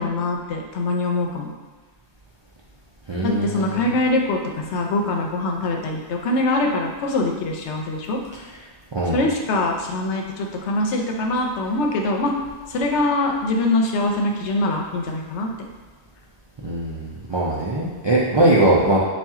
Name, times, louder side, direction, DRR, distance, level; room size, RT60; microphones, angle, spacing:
voice 1, 0.0-1.5 3.2-8.2 9.1-12.3 12.7-15.5, left 2 dB, 85° left, 2 dB, 0.9 m, -23 dB
voice 2, 3.1-3.9 8.9-9.2 16.6-19.0, right 1 dB, 50° right, -6 dB, 0.3 m, -20 dB
4.3 x 2.4 x 3.5 m, 1.4 s
omnidirectional pair, 1.1 m